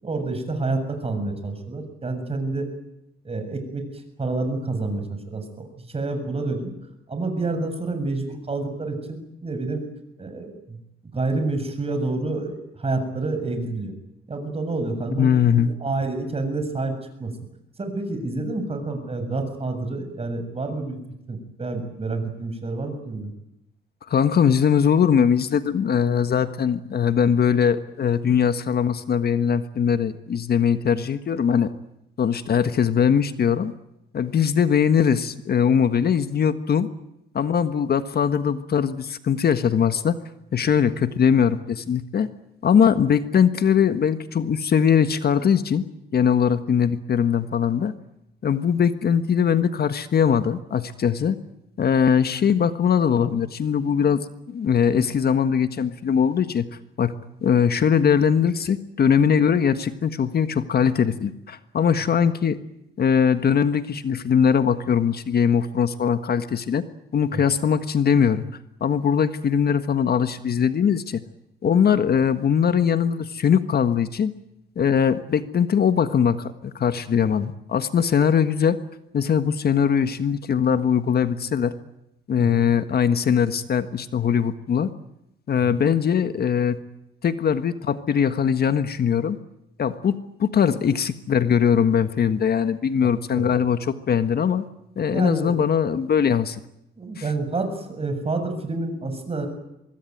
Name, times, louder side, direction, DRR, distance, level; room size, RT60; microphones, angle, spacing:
voice 1, 0.0-2.7 3.2-3.8 4.2-5.4 5.8-6.7 7.1-9.9 10.2-10.8 11.1-13.9 14.3-15.3 15.6-17.3 17.8-21.0 21.3-23.3 67.3-67.4 82.4-82.7 85.7-85.8 93.3-93.5 95.1-95.6 97.0-99.5, right 3 dB, 30° right, 7 dB, 7.2 m, -28 dB
voice 2, 15.2-15.7 24.1-31.7 32.2-33.7 34.1-36.9 37.3-40.1 40.5-42.3 42.6-45.8 46.1-47.9 48.4-51.4 51.8-56.6 57.0-57.1 57.4-62.6 63.0-66.8 67.1-68.4 68.8-71.2 71.6-74.3 74.7-78.8 79.1-81.7 82.3-84.9 85.5-86.8 87.2-89.4 89.8-94.6 95.0-96.6 97.2-97.3, left 7 dB, 50° left, 11 dB, 1.5 m, -21 dB
24.5 x 22.0 x 9.3 m, 0.84 s
cardioid pair, 90°, 20 cm